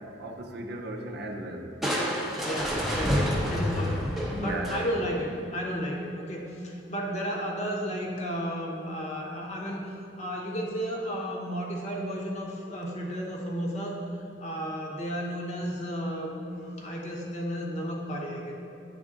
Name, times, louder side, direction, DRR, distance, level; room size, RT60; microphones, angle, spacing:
voice 1, 0.0-1.8 4.3-4.9, right 1 dB, 55° right, 3 dB, 0.6 m, -36 dB
Crushing, 1.8-5.2, equal, ahead, 0.6 m, -28 dB
voice 2, 2.4-4.0 4.4-9.8 10.2-14.0 14.4-18.5, equal, 35° left, -1 dB, 0.9 m, -33 dB
9.7 x 3.7 x 3.7 m, 2.5 s
head